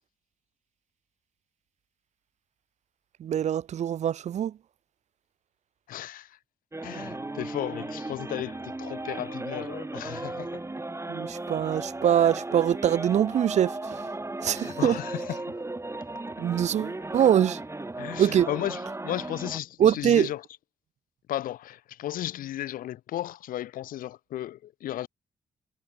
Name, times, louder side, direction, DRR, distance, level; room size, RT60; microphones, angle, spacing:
voice 1, 3.2-4.5 11.1-13.8 14.4-14.9 16.4-17.6 18.2-18.5 19.8-20.3, right 10 dB, 55° right, 0.4 m, -23 dB
voice 2, 5.9-6.4 6.8-10.7 14.5-15.6 17.2-17.3 18.0-20.4 21.3-25.1, left 13 dB, 75° left, 1.4 m, -35 dB
sound 1, 6.7-19.6, right 2 dB, 20° right, 2.2 m, -36 dB
supercardioid pair, 45°, 14 cm